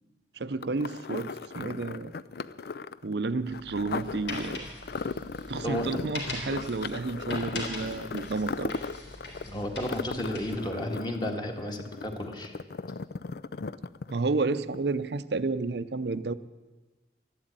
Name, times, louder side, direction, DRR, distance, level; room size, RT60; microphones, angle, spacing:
voice 1, 0.4-2.1 3.0-4.7 5.5-8.7 14.1-16.3, right 3 dB, 70° right, 14 dB, 0.6 m, -31 dB
sound 1, 0.6-14.4 14.7-14.8, left 4 dB, 60° left, 0.4 m, -37 dB
sound 2, 3.5-10.6, left 2 dB, 90° left, 4.0 m, -41 dB
voice 2, 9.5-12.5, equal, 25° left, 3 dB, 1.8 m, -33 dB
13.5 x 12.0 x 8.9 m, 1.2 s
head